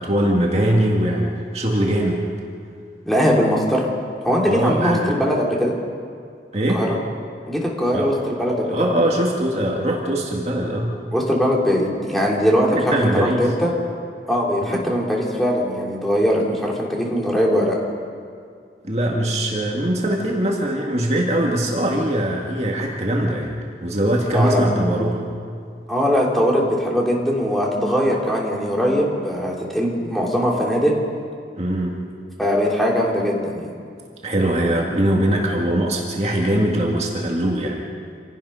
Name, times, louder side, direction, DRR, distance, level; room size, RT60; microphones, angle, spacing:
voice 1, 0.0-2.2 4.5-5.2 6.5-6.8 7.9-8.1 8.7-11.0 12.8-13.5 14.6-14.9 18.8-23.5 23.8-25.3 31.6-32.0 34.2-37.9, right 1 dB, 35° right, -1 dB, 2.0 m, -21 dB
voice 2, 3.1-3.9 4.2-5.7 6.7-7.0 7.5-8.9 11.1-13.7 14.3-17.8 24.3-24.6 25.9-30.9 32.4-33.7, equal, ahead, -3 dB, 3.2 m, -20 dB
26.5 x 18.0 x 5.7 m, 2.2 s
head